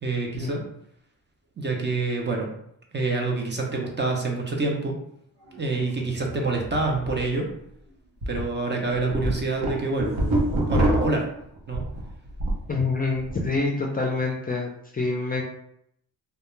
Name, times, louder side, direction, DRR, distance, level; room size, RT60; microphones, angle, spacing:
voice 1, 0.0-0.6 1.6-2.5 2.9-4.9 5.6-7.5 8.3-10.1 10.7-11.2 11.7-11.9, right 3 dB, 30° right, 0 dB, 0.6 m, -26 dB
sound 1, 5.4-8.4, right 1 dB, 45° right, 1.0 m, -44 dB
sound 2, 7.0-7.1 7.5-7.6 8.2-8.4 8.9-12.7 13.0-13.5, right 1 dB, 70° right, 0.9 m, -25 dB
voice 2, 12.7-15.4, left 3 dB, 25° left, -1 dB, 0.4 m, -26 dB
2.3 x 2.2 x 3.0 m, 0.72 s
cardioid pair, 95°, 37 cm